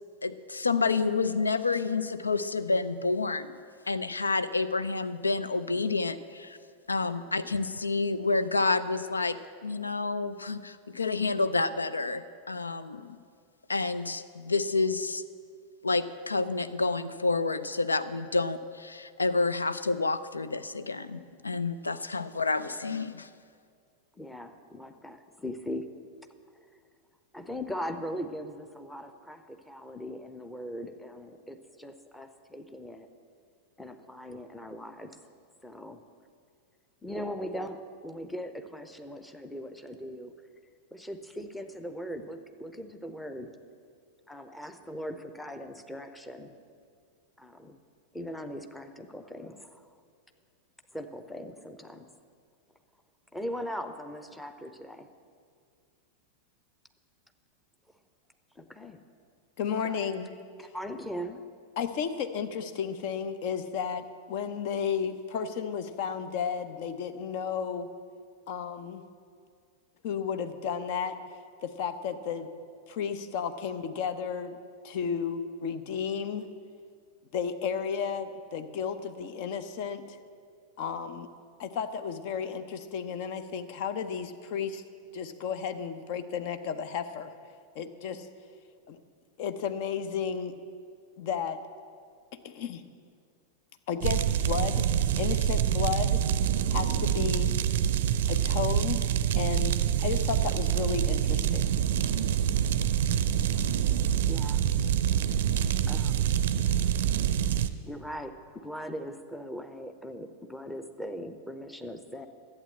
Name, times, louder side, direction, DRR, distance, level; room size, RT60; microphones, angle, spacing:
voice 1, 0.2-3.5 3.9-6.6 6.9-13.2 13.7-15.2 15.8-23.3, left 3 dB, 75° left, 13 dB, 0.4 m, -29 dB
voice 2, 24.2-25.9 27.3-33.1 33.8-35.2 35.6-36.0 37.0-40.3 40.9-43.5 44.3-46.5 47.4-47.8 48.1-49.9 50.9-52.1 53.3-55.1 58.5-59.0 59.8-60.1 60.6-61.4 104.3-104.6 105.9-106.3 107.9-112.3, equal, 5° left, 7 dB, 0.8 m, -40 dB
voice 3, 59.6-60.3 61.8-67.9 68.5-69.0 70.0-71.2 71.6-72.5 72.9-74.6 74.8-76.5 77.3-80.2 80.8-81.3 81.6-84.8 85.1-87.3 87.7-88.3 88.9-89.0 89.4-90.6 91.2-91.6 92.4-92.8 93.9-94.9 95.2-96.2 96.7-97.5 98.3-101.8, left 7 dB, 50° left, 10 dB, 0.7 m, -33 dB
sound 1, 94.0-107.7, right 10 dB, 55° right, 0.5 m, -26 dB
12.0 x 8.6 x 7.5 m, 2.2 s
figure-of-eight pair, 90°, 0 cm